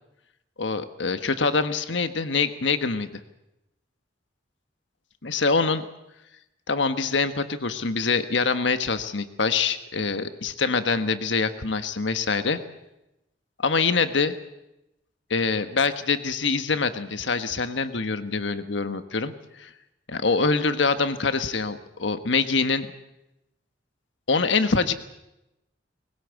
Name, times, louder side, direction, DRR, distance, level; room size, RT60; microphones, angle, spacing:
voice 1, 0.6-3.1 5.2-5.8 6.7-12.6 13.6-14.3 15.3-19.3 19.6-19.7 20.1-22.9 24.3-24.9, left 4 dB, 80° left, 10 dB, 1.3 m, -24 dB
20.5 x 18.5 x 8.3 m, 0.92 s
head